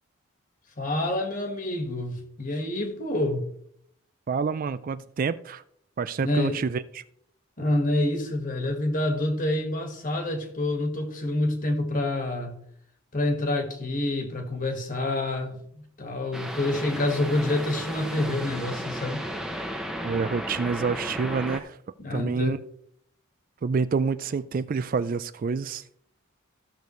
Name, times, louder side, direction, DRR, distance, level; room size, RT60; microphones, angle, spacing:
voice 1, 0.8-3.5 6.2-6.6 7.6-12.6 13.1-15.6 16.0-19.2 22.0-22.6, left 1 dB, 40° left, 1.7 m, -27 dB
voice 2, 4.3-5.6 6.0-7.0 20.0-21.8 22.1-22.6 23.6-25.8, right 5 dB, 40° right, 0.3 m, -27 dB
sound 1, 16.3-21.6, equal, 5° right, 0.8 m, -34 dB
14.5 x 6.7 x 3.1 m
head